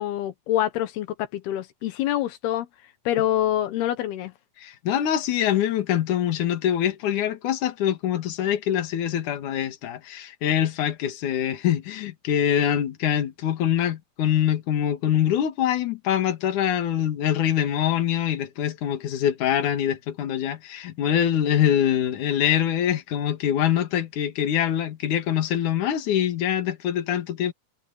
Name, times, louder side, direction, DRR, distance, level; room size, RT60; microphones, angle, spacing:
voice 1, 0.0-2.7 3.1-4.3, left 12 dB, 85° left, 3.2 m, -26 dB
voice 2, 4.6-27.5, left 10 dB, 55° left, 3.1 m, -24 dB
omnidirectional pair, 4.5 m